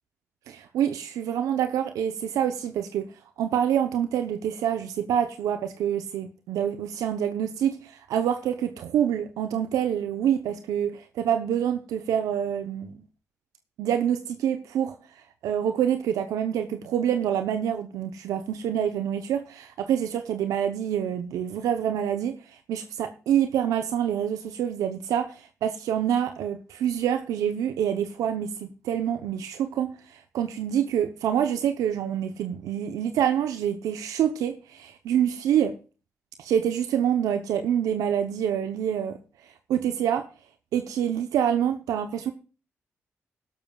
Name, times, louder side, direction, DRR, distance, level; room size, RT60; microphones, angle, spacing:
voice 1, 0.5-3.1 3.4-12.9 13.8-14.9 15.4-22.4 22.7-35.7 36.4-39.2 39.7-40.2 40.7-42.3, right 9 dB, 85° right, 9 dB, 0.7 m, -26 dB
16.0 x 12.5 x 2.3 m, 0.34 s
supercardioid pair, 50°, 6 cm